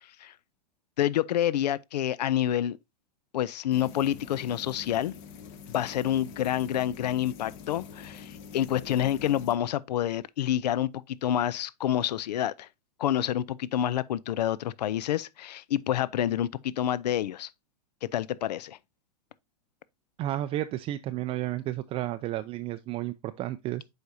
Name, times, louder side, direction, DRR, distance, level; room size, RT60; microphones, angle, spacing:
voice 1, 1.0-2.8 3.3-5.1 5.7-12.7 13.0-17.5 18.0-18.8, left 11 dB, 75° left, 0.5 m, -28 dB
sound 1, 3.7-9.5, left 6 dB, 50° left, 1.1 m, -46 dB
voice 2, 20.2-23.8, right 14 dB, 25° right, 0.4 m, -32 dB
7.9 x 4.9 x 2.7 m
hypercardioid pair, 110°, 21 cm